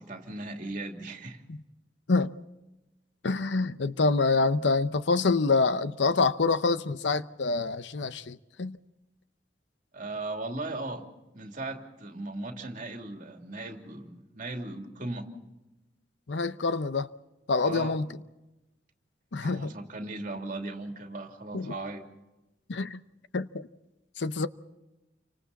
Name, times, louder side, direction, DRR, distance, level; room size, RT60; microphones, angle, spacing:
voice 1, 0.0-1.4 9.9-11.1 11.3-15.3 17.6-18.0 19.4-22.0, right 2 dB, 45° right, 2.9 m, -37 dB
voice 2, 3.2-8.8 16.3-17.1 17.5-18.1 19.3-19.7 21.5-21.7 22.7-23.0 23.3-23.7 24.2-24.5, left 3 dB, 75° left, 0.8 m, -26 dB
29.5 x 25.0 x 4.1 m
head